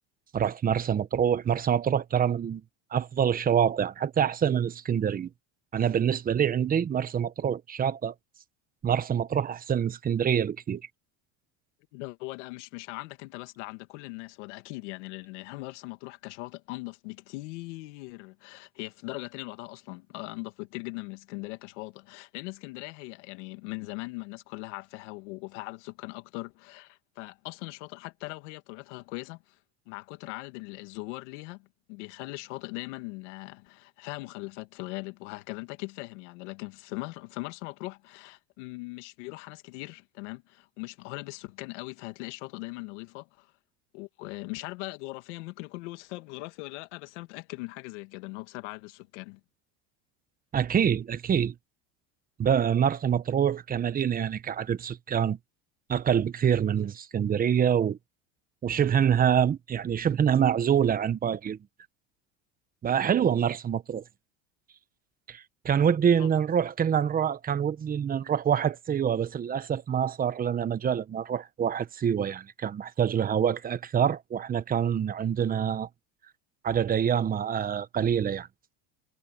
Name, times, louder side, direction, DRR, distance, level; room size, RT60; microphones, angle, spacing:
voice 1, 0.3-2.6 2.9-5.3 5.7-8.1 8.8-10.8 50.5-51.5 52.4-55.4 55.9-58.0 58.6-61.6 62.8-64.0 65.3-75.9 76.6-78.5, right 8 dB, 25° right, 1.1 m, -26 dB
voice 2, 11.9-29.6 29.9-43.5 43.9-49.4 66.2-66.3, left 24 dB, 80° left, 2.2 m, -40 dB
supercardioid pair, 130°, 35 cm